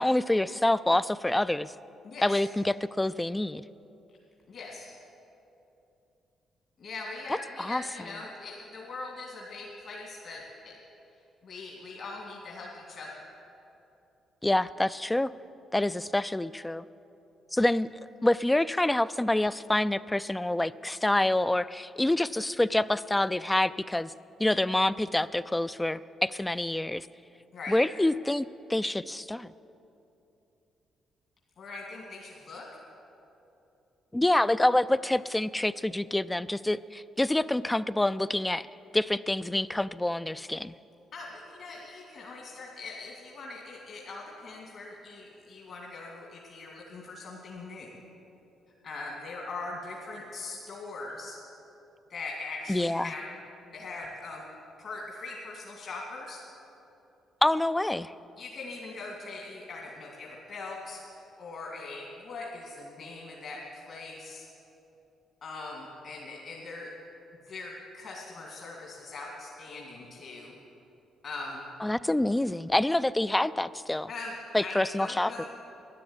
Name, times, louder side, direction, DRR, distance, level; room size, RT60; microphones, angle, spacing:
voice 1, 0.0-1.7 2.2-3.6 7.6-7.8 14.4-15.3 15.7-16.8 17.5-17.9 18.2-24.1 24.4-27.1 27.7-29.5 34.1-38.7 38.9-40.7 52.7-53.1 57.4-58.1 71.8-74.1 74.5-75.4, left 1 dB, 10° left, 15 dB, 0.3 m, -27 dB
voice 2, 2.0-2.4 4.5-4.9 6.8-10.8 11.4-13.2 27.5-27.8 31.6-32.7 41.1-48.0 48.8-51.4 52.1-53.2 53.7-54.5 54.8-56.4 58.4-64.5 65.4-66.9 67.5-70.5 71.2-71.6 74.1-74.3 74.6-75.5, left 3 dB, 60° left, -2 dB, 2.3 m, -41 dB
12.5 x 10.5 x 8.8 m, 2.9 s
cardioid pair, 90°, 0 cm